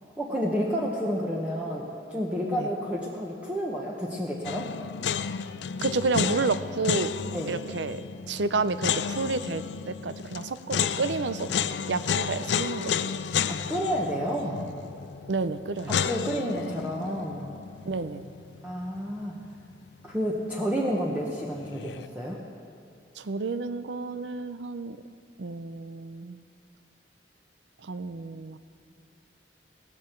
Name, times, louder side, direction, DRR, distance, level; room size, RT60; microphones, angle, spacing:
voice 1, 0.2-4.7 7.3-7.6 13.5-14.6 15.9-17.5 18.6-19.3 20.0-22.4, equal, 10° right, -3 dB, 1.1 m, -30 dB
sound 1, 4.4-19.5 19.7-19.8 21.6-22.1, left 7 dB, 75° left, 0.4 m, -32 dB
voice 2, 5.8-7.1 7.5-8.0 8.3-11.5 11.9-12.9 15.3-15.9 17.8-18.3 23.2-25.0 25.4-26.4 27.8-28.6, right 3 dB, 80° right, 13 dB, 0.6 m, -30 dB
17.5 x 14.5 x 4.5 m, 2.6 s
head